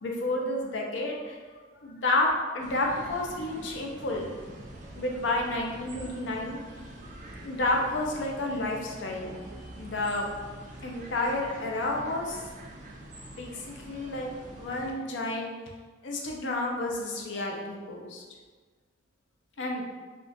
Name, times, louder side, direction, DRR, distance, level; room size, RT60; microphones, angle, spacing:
voice 1, 0.0-4.4 5.0-6.6 7.4-9.3 9.7-10.3 10.8-12.4 13.4-14.3 14.6-15.5 16.0-18.2 19.6-19.8, left 2 dB, 75° left, 0 dB, 0.5 m, -30 dB
sound 1, 2.6-14.9, right 1 dB, 40° right, 0.4 m, -45 dB
3.5 x 2.4 x 2.6 m, 1.4 s
head